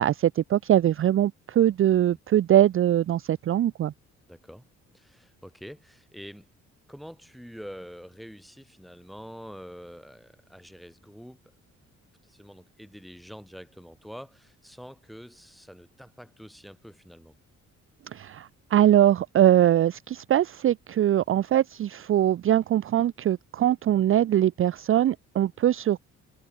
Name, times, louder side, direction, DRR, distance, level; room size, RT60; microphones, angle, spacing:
voice 1, 0.0-3.9 18.1-26.0, right 11 dB, 45° right, 0.5 m, -22 dB
voice 2, 4.3-4.6 4.9-6.5 6.9-11.5 12.2-17.4, equal, ahead, 4.2 m, -46 dB
cardioid pair, 90°, 30 cm